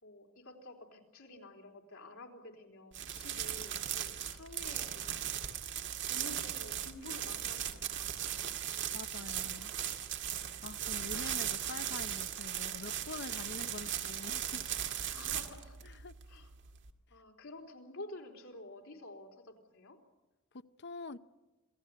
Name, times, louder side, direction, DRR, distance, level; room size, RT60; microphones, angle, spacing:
voice 1, 0.0-5.4 6.1-8.5 13.5-13.7 15.1-15.8 16.3-16.5 17.1-20.0, left 2 dB, 85° left, 4.0 m, -50 dB
sound 1, 2.9-16.9, right 10 dB, 60° right, 2.0 m, -38 dB
voice 2, 8.9-9.7 10.6-14.7 15.8-16.1 20.5-21.2, left 4 dB, 55° left, 0.7 m, -46 dB
27.0 x 17.5 x 8.4 m
head